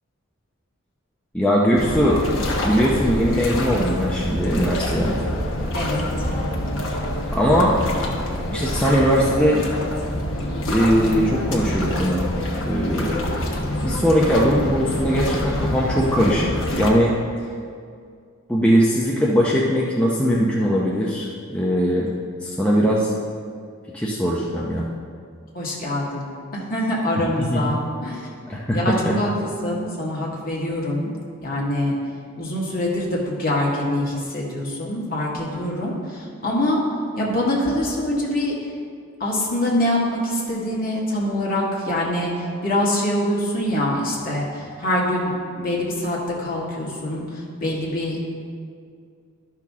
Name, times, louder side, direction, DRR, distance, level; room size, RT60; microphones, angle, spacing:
voice 1, 1.3-2.2 2.6-5.2 7.3-7.8 8.5-9.6 10.7-12.3 12.6-13.2 13.8-17.1 18.5-22.1 22.4-23.1 23.9-24.9 27.4-27.7 28.5-29.1, equal, 5° left, -5 dB, 0.6 m, -20 dB
sound 1, 1.7-16.9, left 1 dB, 65° left, 1.2 m, -26 dB
voice 2, 5.7-6.1 25.5-28.2 28.7-31.1 31.4-31.9 32.4-36.8 37.2-38.5 39.2-48.2, left 1 dB, 40° left, -4 dB, 1.8 m, -24 dB
12.0 x 6.0 x 3.6 m, 2.2 s
head